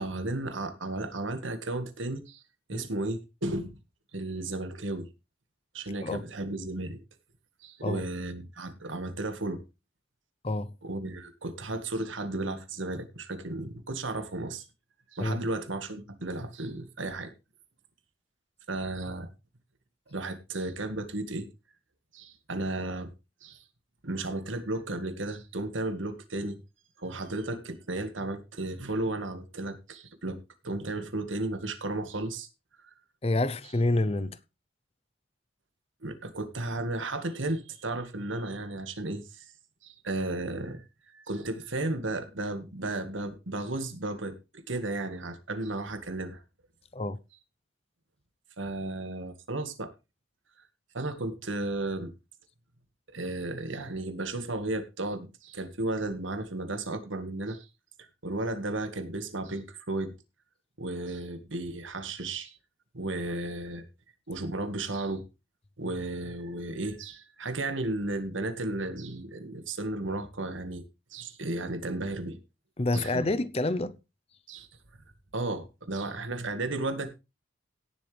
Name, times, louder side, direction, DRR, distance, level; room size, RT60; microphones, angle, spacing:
voice 1, 0.0-2.4 2.7-3.8 4.1-5.1 5.7-7.0 7.6-9.6 10.8-14.7 15.1-17.3 18.7-19.3 20.1-21.5 22.1-23.1 23.4-23.6 24.0-26.6 27.0-30.4 30.6-32.5 32.8-32.9 36.0-39.5 39.8-40.8 41.1-46.4 48.6-49.9 50.9-52.1 53.1-57.7 58.0-60.1 60.8-62.6 62.9-63.9 64.3-65.2 65.8-70.8 71.1-72.4 72.9-73.3 74.5-74.7 75.3-77.1, right 2 dB, 80° right, 1.8 m, -34 dB
voice 2, 33.2-34.4 46.9-47.2 72.8-74.0, left 2 dB, 30° left, 0.6 m, -28 dB
17.5 x 7.4 x 3.4 m
head